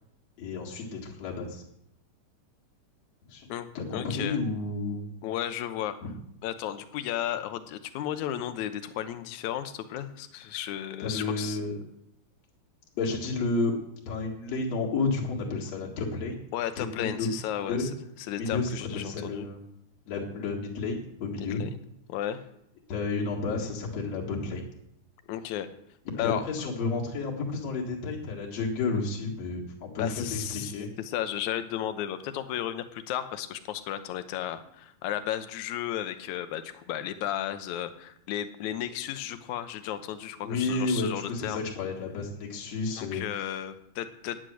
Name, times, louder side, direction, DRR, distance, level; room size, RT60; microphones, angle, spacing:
voice 1, 0.4-1.6 3.3-3.5 3.7-5.1 11.0-11.8 13.0-13.8 14.1-16.4 16.8-17.9 18.4-19.6 20.1-21.6 22.9-24.7 26.2-30.9 40.4-43.5, left 3 dB, 55° left, -3 dB, 3.0 m, -31 dB
voice 2, 3.5-4.4 5.2-6.0 6.4-11.6 16.5-17.9 18.3-19.5 21.4-21.7 22.1-22.4 25.3-25.7 26.2-26.4 30.0-30.7 31.0-41.6 43.0-44.4, left 11 dB, 75° left, 10 dB, 2.1 m, -34 dB
10.5 x 9.6 x 6.3 m, 0.74 s
omnidirectional pair, 3.6 m